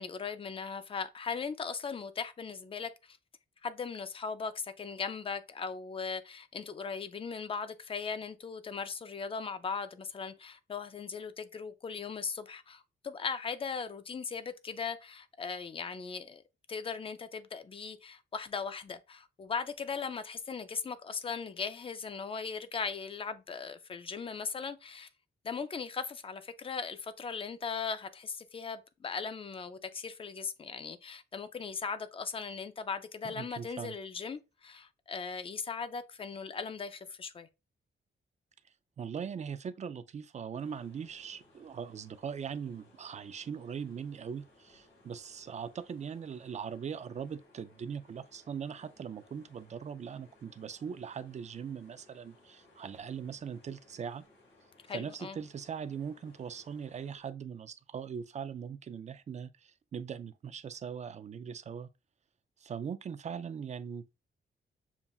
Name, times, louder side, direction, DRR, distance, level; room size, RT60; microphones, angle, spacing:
voice 1, 0.0-3.2 3.6-16.4 16.7-25.1 25.4-37.5 54.9-55.4, left 5 dB, 30° left, 0.4 m, -38 dB
voice 2, 33.2-34.0 39.0-54.2 54.9-61.9 62.6-64.1, right 7 dB, 40° right, 0.4 m, -40 dB
sound 1, 40.5-57.2, left 2 dB, 75° left, 2.0 m, -63 dB
7.0 x 2.4 x 2.3 m
wide cardioid pair, 120°, 19 cm